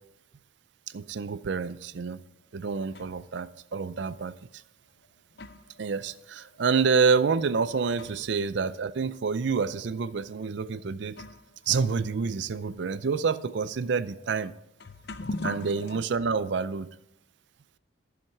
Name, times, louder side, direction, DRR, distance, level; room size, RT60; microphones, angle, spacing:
voice 1, 0.9-2.2 2.5-4.3 5.8-11.2 11.7-14.5 15.4-16.9, right 5 dB, 60° right, 0.4 m, -28 dB
sound 1, 2.3-3.4 4.3-4.4 5.0-8.5 8.8-8.9 9.7-9.8 10.6-10.7 11.1-16.0, left 2 dB, 55° left, 0.6 m, -43 dB
11.0 x 7.2 x 4.6 m
head